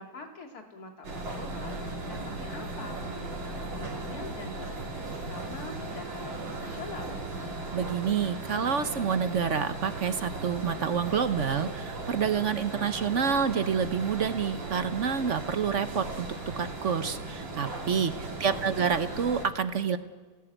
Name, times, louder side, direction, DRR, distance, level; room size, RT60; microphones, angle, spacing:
voice 1, 0.0-7.2 18.2-18.8, left 3 dB, 50° left, 4 dB, 3.0 m, -44 dB
sound 1, 1.0-19.5, right 2 dB, 80° right, 3.7 m, -37 dB
voice 2, 7.7-16.3 16.6-20.0, right 7 dB, 50° right, 11 dB, 1.0 m, -28 dB
28.0 x 18.5 x 9.1 m, 1.5 s
omnidirectional pair, 2.0 m